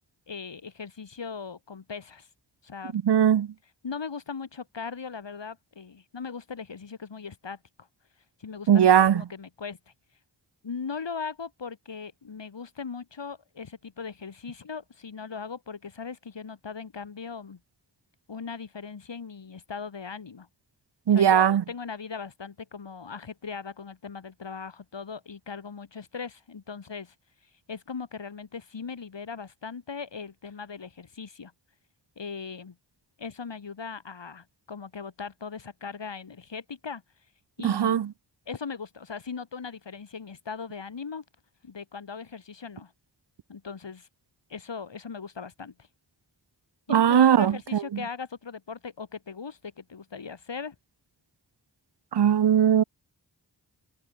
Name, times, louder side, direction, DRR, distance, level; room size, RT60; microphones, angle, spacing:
voice 1, 0.3-2.3 2.6-3.0 3.8-7.6 8.4-9.8 10.6-17.6 18.3-20.5 21.1-27.1 27.7-31.5 32.2-32.8 33.2-37.0 37.6-38.1 38.5-41.2 41.6-42.9 43.5-44.1 44.5-45.7 46.9-50.8, left 5 dB, 75° left, 7.4 m, -39 dB
voice 2, 2.9-3.5 8.7-9.2 21.1-21.6 37.6-38.1 46.9-47.8 52.1-52.8, right 9 dB, 65° right, 0.8 m, -19 dB
cardioid pair, 55°, 43 cm